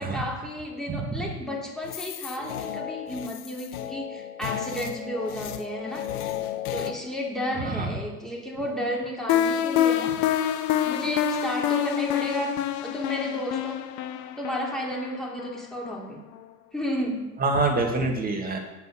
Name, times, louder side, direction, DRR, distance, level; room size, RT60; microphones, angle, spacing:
voice 1, 0.0-6.1 6.7-10.2 10.8-13.8 14.4-16.2 16.7-17.3, equal, ahead, -2 dB, 3.1 m, -32 dB
voice 2, 0.9-1.3 7.6-7.9 17.4-18.6, right 3 dB, 20° right, 2 dB, 2.4 m, -26 dB
sound 1, 1.8-6.9, left 11 dB, 70° left, 1.1 m, -34 dB
sound 2, 9.3-16.1, left 10 dB, 40° left, 0.9 m, -26 dB
9.3 x 8.3 x 6.3 m, 1.1 s
hypercardioid pair, 100°, 46 cm